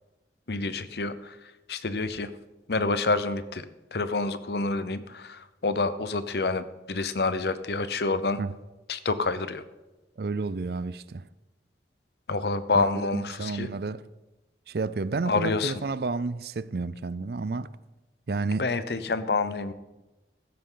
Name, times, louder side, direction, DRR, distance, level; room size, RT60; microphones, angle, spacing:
voice 1, 0.5-2.3 2.7-8.4 8.9-9.6 12.3-13.7 15.3-15.7 18.6-19.7, left 3 dB, 65° left, 0.8 m, -28 dB
voice 2, 10.2-11.3 12.7-12.9 13.1-14.0 14.7-17.7 18.3-18.6, right 3 dB, 60° right, 0.5 m, -31 dB
15.5 x 13.0 x 3.9 m
head